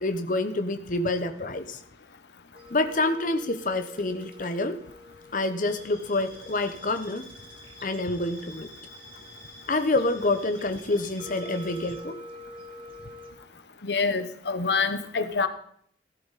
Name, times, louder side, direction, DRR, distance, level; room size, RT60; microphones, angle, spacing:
voice 1, 0.0-1.8 2.7-4.8 5.3-7.3 7.8-8.7 9.7-12.2, left 2 dB, 50° left, 8 dB, 1.0 m, -27 dB
sound 1, 2.5-13.3, left 1 dB, 30° right, 1.8 m, -48 dB
sound 2, 5.6-12.0, left 1 dB, 20° left, 6.8 m, -48 dB
voice 2, 13.8-15.5, left 4 dB, 75° left, 10 dB, 0.9 m, -26 dB
15.5 x 12.0 x 4.1 m, 0.66 s
head